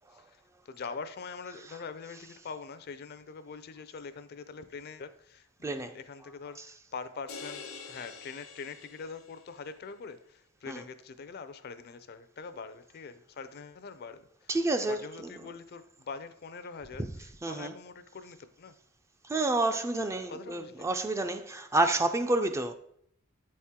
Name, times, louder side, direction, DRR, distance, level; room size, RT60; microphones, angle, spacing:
voice 1, 0.1-14.5 14.8-18.7 20.3-20.9, left 5 dB, 50° left, 0.5 m, -44 dB
voice 2, 5.6-6.0 10.7-10.8 14.5-15.3 17.4-17.7 19.2-22.7, right 2 dB, 15° right, 0.3 m, -29 dB
sound 1, 7.3-9.6, left 5 dB, 90° left, 1.1 m, -46 dB
7.9 x 4.3 x 3.6 m
head